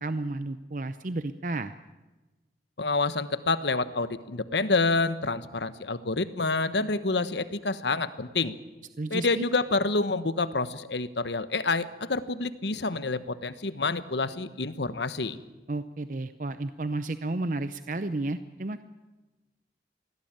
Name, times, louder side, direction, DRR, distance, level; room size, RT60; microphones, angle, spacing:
voice 1, 0.0-1.7 9.0-9.5 15.7-18.8, right 2 dB, 45° right, 12 dB, 0.6 m, -32 dB
voice 2, 2.8-8.5 9.1-15.4, left 3 dB, 80° left, 13 dB, 1.2 m, -28 dB
24.5 x 17.0 x 9.0 m, 1.2 s
head